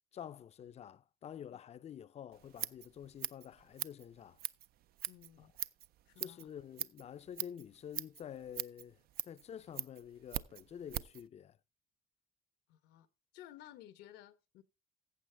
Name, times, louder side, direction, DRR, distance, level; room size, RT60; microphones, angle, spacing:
voice 1, 0.1-4.4 5.4-5.5 6.2-9.0 9.2-11.6, left 9 dB, 40° left, 0.5 m, -49 dB
Scissors, 2.3-11.2, right 13 dB, 65° right, 0.4 m, -43 dB
voice 2, 5.1-5.5 6.1-6.5 12.7-13.1 13.3-14.6, left 12 dB, 90° left, 1.0 m, -55 dB
14.5 x 7.5 x 3.3 m
cardioid pair, 110°, 17 cm